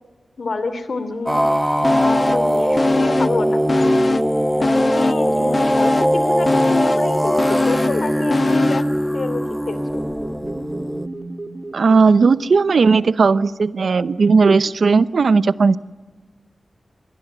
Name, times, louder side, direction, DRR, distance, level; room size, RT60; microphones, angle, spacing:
voice 1, 0.4-1.4 2.0-4.1 4.6-8.8 9.1-10.0, left 3 dB, 60° left, 12 dB, 2.8 m, -27 dB
sound 1, 1.3-11.1, equal, ahead, 0.7 m, -20 dB
sound 2, 1.8-2.5 2.8-4.3 4.6-9.0 9.3-9.4, left 3 dB, 45° left, 0.7 m, -22 dB
sound 3, 9.8-13.0, right 2 dB, 45° right, 2.6 m, -36 dB
voice 2, 11.7-15.8, right 4 dB, 75° right, 15 dB, 0.8 m, -15 dB
27.0 x 21.5 x 8.0 m, 1.3 s
wide cardioid pair, 95°, 0 cm